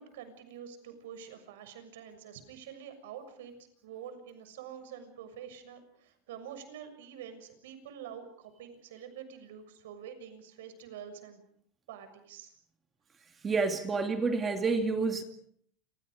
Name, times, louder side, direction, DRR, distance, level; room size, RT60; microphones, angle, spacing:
voice 1, 0.0-3.5 3.8-11.4 11.9-12.5, right 8 dB, 80° right, 9 dB, 6.8 m, -47 dB
voice 2, 13.4-15.2, right 4 dB, 15° right, 5 dB, 2.4 m, -29 dB
29.0 x 28.0 x 5.1 m, 0.65 s
supercardioid pair, 160°, 0 cm